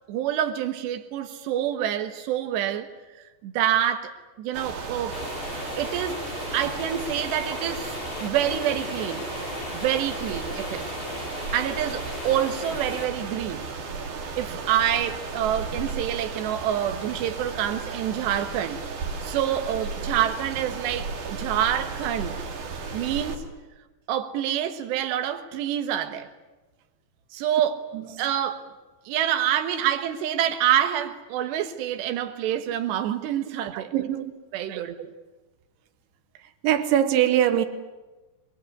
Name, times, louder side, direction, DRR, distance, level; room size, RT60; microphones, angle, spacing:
voice 1, 0.1-2.9 3.4-4.1 4.4-5.3 5.8-6.3 6.5-9.3 9.7-10.9 11.5-13.6 14.4-18.8 19.2-22.4 22.9-23.4 24.1-26.3 27.3-27.8 28.2-28.6 29.1-33.9 34.5-35.1, right 10 dB, 75° right, 3.5 m, -27 dB
sound 1, 4.5-23.4, right 4 dB, 50° right, 3.4 m, -35 dB
sound 2, 5.1-13.1, left 3 dB, 40° left, 6.0 m, -37 dB
voice 2, 33.7-34.3 34.7-34.8 36.6-37.7, right 11 dB, 90° right, 3.6 m, -23 dB
25.0 x 22.5 x 9.7 m
omnidirectional pair, 5.2 m